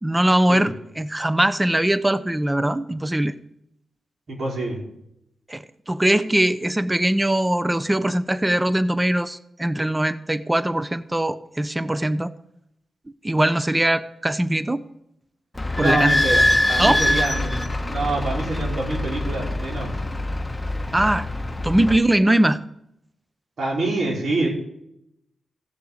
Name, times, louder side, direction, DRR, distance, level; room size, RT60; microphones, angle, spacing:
voice 1, 0.0-3.3 5.5-12.3 13.2-14.8 15.8-16.1 16.8-17.0 20.9-21.3 21.6-22.6, right 1 dB, 15° right, 14 dB, 0.7 m, -21 dB
voice 2, 4.3-4.8 15.8-20.0 23.6-24.5, right 2 dB, 70° right, -3 dB, 4.6 m, -26 dB
Idling / Squeak, 15.5-22.0, left 1 dB, 15° left, 1.2 m, -23 dB
16.0 x 6.8 x 5.0 m, 0.77 s
cardioid pair, 60°, 0 cm